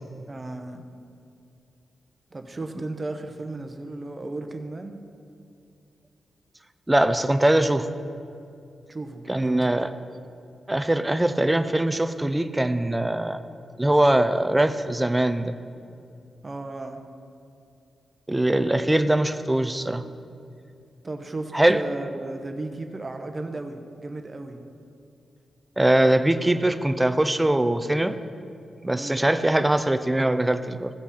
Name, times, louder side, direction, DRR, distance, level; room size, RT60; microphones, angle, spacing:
voice 1, 0.3-0.8 2.3-5.0 8.9-9.8 16.4-17.0 21.0-24.6 28.9-29.2, right 2 dB, 25° right, 6 dB, 0.8 m, -35 dB
voice 2, 6.9-7.9 9.3-9.9 10.7-13.4 13.8-15.5 18.3-20.0 21.5-21.8 25.8-28.2 28.8-30.9, right 1 dB, 10° right, 10 dB, 0.4 m, -22 dB
15.5 x 6.0 x 4.1 m, 2.6 s
wide cardioid pair, 125°, 0 cm